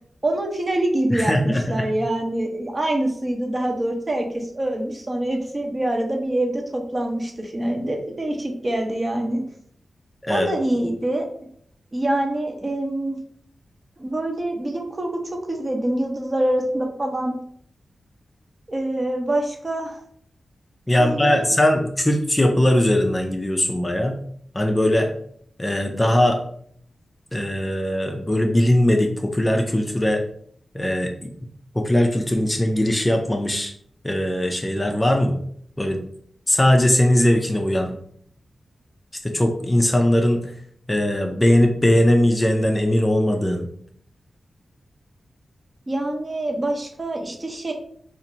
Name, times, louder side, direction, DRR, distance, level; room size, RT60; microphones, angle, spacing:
voice 1, 0.2-9.4 10.3-11.3 11.9-13.2 14.0-17.3 18.7-20.0 21.0-21.5 45.9-47.7, right 1 dB, 30° right, 2 dB, 0.8 m, -25 dB
voice 2, 1.1-1.9 10.2-10.5 20.9-24.2 24.5-25.1 25.6-26.4 27.3-30.2 30.7-31.3 31.7-33.7 34.0-35.4 35.8-36.0 36.5-37.9 39.2-40.5 40.9-43.6, left 1 dB, 15° left, 3 dB, 0.4 m, -20 dB
2.8 x 2.5 x 4.3 m, 0.63 s
wide cardioid pair, 80°, 0 cm